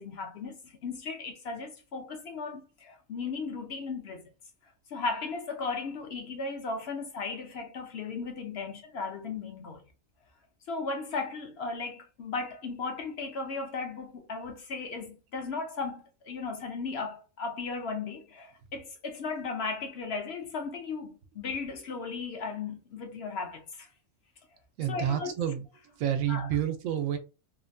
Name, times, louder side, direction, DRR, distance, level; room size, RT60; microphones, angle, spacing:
voice 1, 0.0-4.2 4.9-9.8 10.7-23.9 24.9-25.3 26.3-26.5, left 4 dB, 60° left, 0.8 m, -36 dB
voice 2, 24.8-25.7 26.0-27.2, right 10 dB, 85° right, 1.0 m, -29 dB
3.2 x 2.1 x 2.5 m
omnidirectional pair, 1.4 m